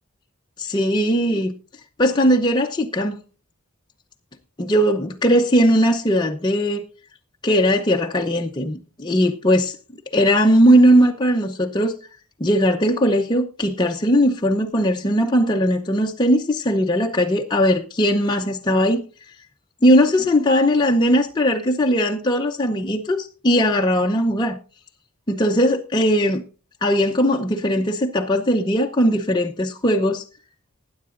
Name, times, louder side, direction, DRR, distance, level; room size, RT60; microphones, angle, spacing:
voice 1, 0.6-1.5 2.0-3.2 4.6-6.8 7.4-9.8 10.1-12.0 12.4-19.0 19.8-24.6 25.3-26.4 26.8-30.2, equal, 20° left, 0.7 m, -19 dB
20.0 x 9.5 x 2.5 m
head